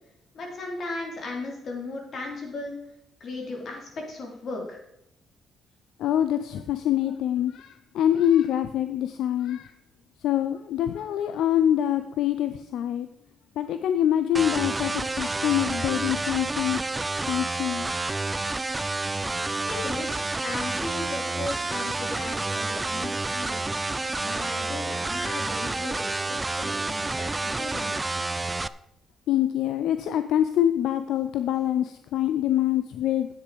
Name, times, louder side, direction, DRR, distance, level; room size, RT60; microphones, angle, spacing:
voice 1, 0.3-2.8 3.2-4.8 19.6-23.6 24.2-28.0, left 2 dB, 55° left, 0 dB, 3.6 m, -36 dB
voice 2, 6.0-9.7 10.2-13.1 13.6-16.8 17.3-17.9 29.3-33.3, left 11 dB, 80° left, 11 dB, 0.5 m, -25 dB
sound 1, 14.3-28.7, right 2 dB, 20° right, 0.4 m, -29 dB
10.5 x 8.7 x 5.0 m, 0.79 s
cardioid pair, 90°, 0 cm